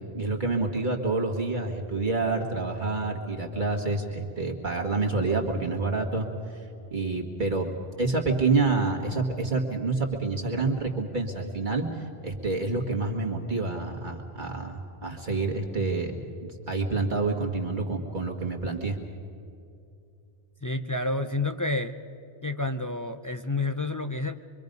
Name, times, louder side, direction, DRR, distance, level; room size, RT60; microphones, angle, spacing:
voice 1, 0.1-6.3 6.9-7.7 8.0-11.9 12.2-16.3 16.7-19.0, right 3 dB, 40° right, 0 dB, 1.9 m, -28 dB
voice 2, 20.6-22.0 22.4-24.4, left 2 dB, 25° left, 7 dB, 0.4 m, -29 dB
25.0 x 24.0 x 5.3 m, 2.6 s
omnidirectional pair, 1.2 m